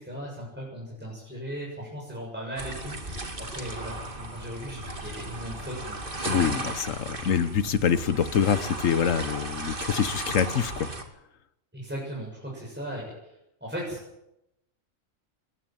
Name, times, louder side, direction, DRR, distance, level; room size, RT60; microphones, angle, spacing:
voice 1, 0.0-6.0 6.2-6.6 7.1-7.3 11.7-14.0, equal, 10° right, -4 dB, 7.3 m, -38 dB
sound 1, 2.6-11.0, right 2 dB, 40° right, 2.6 m, -36 dB
voice 2, 6.2-10.9, left 7 dB, 75° left, 14 dB, 1.3 m, -25 dB
21.0 x 15.0 x 9.3 m, 0.87 s
omnidirectional pair, 1.4 m